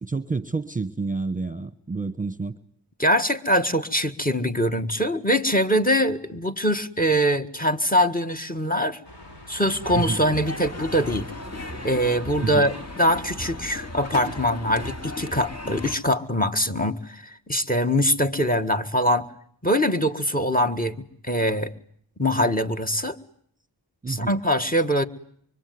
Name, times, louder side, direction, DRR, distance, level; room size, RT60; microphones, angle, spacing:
voice 1, 0.0-2.6 9.9-10.2 12.4-12.7 24.0-24.4, right 3 dB, 20° right, 14 dB, 1.2 m, -29 dB
voice 2, 3.0-9.0 9.5-11.3 11.8-19.3 19.6-21.0 21.2-21.7 22.2-23.2 24.1-25.1, equal, 20° left, 11 dB, 1.8 m, -23 dB
sound 1, 9.0-14.5, left 1 dB, 65° left, 5.7 m, -42 dB
sound 2, 9.8-16.0, left 2 dB, 35° left, 2.4 m, -36 dB
25.0 x 24.5 x 9.5 m, 0.65 s
wide cardioid pair, 55°, 43 cm